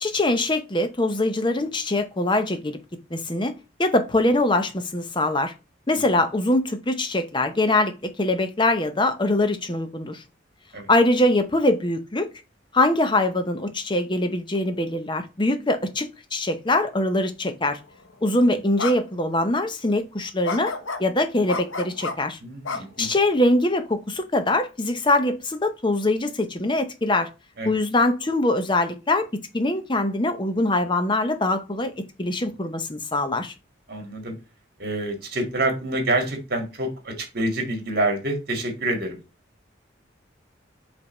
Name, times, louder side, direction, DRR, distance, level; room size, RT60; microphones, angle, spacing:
voice 1, 0.0-2.8 3.1-3.5 3.8-5.5 5.9-10.2 10.9-12.3 12.7-17.8 18.2-20.7 21.0-22.4 23.0-27.3 27.6-33.5, left 2 dB, 25° left, 0.7 m, -23 dB
sound 1, 17.9-18.1 18.8-18.9 19.3-19.4 20.4-21.0 21.5-22.1 22.6-23.4, left 4 dB, 80° left, 1.0 m, -30 dB
voice 2, 22.4-23.2 27.6-27.7 33.9-34.3 34.8-39.2, right 2 dB, 50° right, 1.8 m, -27 dB
5.5 x 3.4 x 5.2 m
head